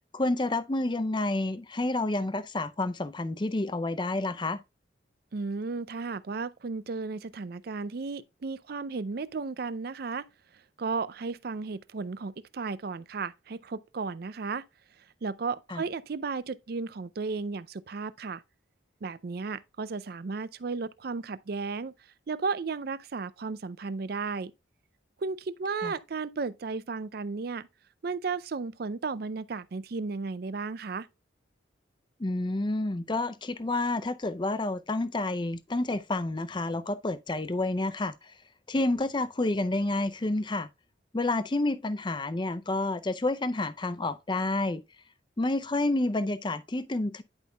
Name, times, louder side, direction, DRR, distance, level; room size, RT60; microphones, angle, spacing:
voice 1, 0.1-4.6 15.7-15.8 25.8-25.9 32.2-38.3 38.7-40.7 41.1-44.8 45.4-47.2, left 2 dB, 25° left, 0.5 m, -29 dB
voice 2, 5.3-10.3 10.8-14.6 15.2-18.4 19.0-21.9 22.3-24.5 25.2-27.7 28.0-31.1, right 4 dB, 50° right, 0.4 m, -34 dB
10.5 x 5.3 x 2.3 m
head